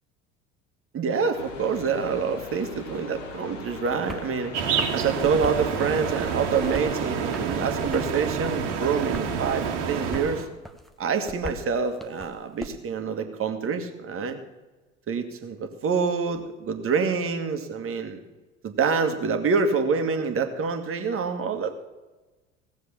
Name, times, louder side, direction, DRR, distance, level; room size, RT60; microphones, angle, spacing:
voice 1, 0.9-4.5 4.9-10.5 11.0-14.4 15.1-18.2 18.6-21.7, right 5 dB, 35° right, 7 dB, 1.9 m, -26 dB
sound 1, 1.3-7.9, left 4 dB, 70° left, 1.9 m, -42 dB
sound 2, 4.0-4.3 4.6-5.7 6.1-7.0 7.3-8.2 8.6-9.3 9.6-10.3 10.6-12.7, equal, ahead, 1.2 m, -39 dB
sound 3, 4.5-10.5, right 6 dB, 60° right, 1.9 m, -28 dB
17.0 x 7.3 x 7.3 m, 1.2 s
figure-of-eight pair, 70°, 39 cm